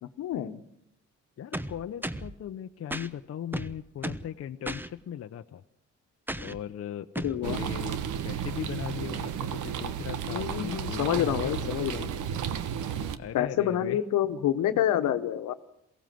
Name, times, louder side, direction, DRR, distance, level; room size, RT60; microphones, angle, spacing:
voice 1, 0.2-0.6 7.2-7.6 10.3-12.1 13.3-15.5, left 11 dB, 80° left, 9 dB, 1.3 m, -28 dB
voice 2, 1.4-5.6 6.3-7.1 7.4-11.8 13.1-14.0, left 9 dB, 55° left, 7 dB, 0.8 m, -38 dB
sound 1, 1.5-2.3 2.9-3.1 3.5-4.3 4.6-4.9 6.3-6.6 7.1-7.4, right 1 dB, 5° right, 1.0 m, -34 dB
sound 2, 7.4-13.2, right 8 dB, 85° right, 1.2 m, -33 dB
23.0 x 16.5 x 7.7 m, 0.78 s
cardioid pair, 90°, 30 cm